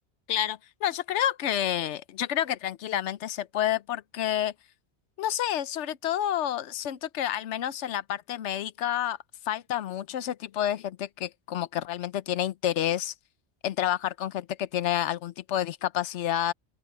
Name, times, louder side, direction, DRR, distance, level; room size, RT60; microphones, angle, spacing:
voice 1, 0.3-4.5 5.2-9.2 9.5-13.1 13.6-16.5, left 11 dB, 80° left, 1.0 m, -29 dB
open air
omnidirectional pair, 1.2 m